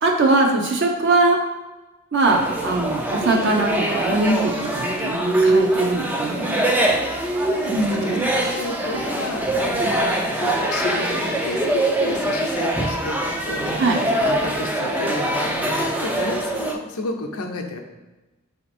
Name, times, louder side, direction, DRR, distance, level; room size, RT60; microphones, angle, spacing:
voice 1, 0.0-1.4 2.1-6.6 7.7-8.3 13.8-14.0, right 2 dB, 50° right, 1 dB, 0.6 m, -21 dB
sound 1, 2.2-16.7, right 1 dB, 5° right, 0.3 m, -23 dB
voice 2, 6.9-17.8, left 2 dB, 80° left, 3 dB, 0.6 m, -31 dB
4.3 x 2.8 x 4.2 m, 1.1 s
head